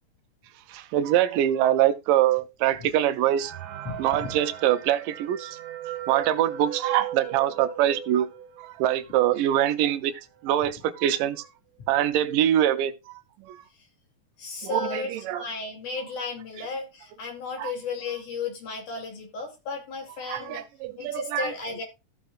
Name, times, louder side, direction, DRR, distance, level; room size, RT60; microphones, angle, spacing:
voice 1, 0.7-3.5 4.0-5.6 6.1-8.3 8.6-11.5 11.9-12.9 13.4-13.6 14.7-15.4 17.6-17.7 20.3-21.5, right 12 dB, 85° right, 2.3 m, -24 dB
sound 1, 3.4-8.8 9.3-9.4 9.6-9.7 10.4-10.5 10.9-11.2, right 11 dB, 65° right, 2.0 m, -37 dB
voice 2, 3.8-4.4 13.7-13.9 14.4-20.6 21.0-21.8, left 4 dB, 65° left, 4.3 m, -34 dB
15.0 x 6.9 x 2.4 m
omnidirectional pair, 3.8 m